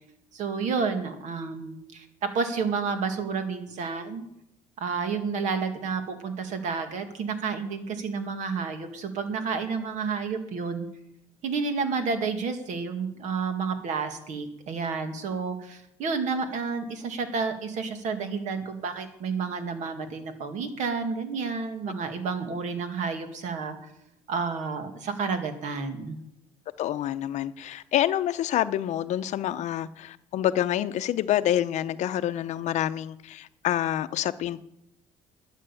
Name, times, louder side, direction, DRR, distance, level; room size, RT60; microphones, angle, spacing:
voice 1, 0.3-4.3 4.8-10.9 11.4-23.8 24.3-26.2, right 5 dB, 65° right, 2.0 m, -30 dB
voice 2, 26.8-34.6, left 12 dB, 60° left, 0.7 m, -27 dB
12.5 x 9.3 x 7.0 m
cardioid pair, 115°, 14 cm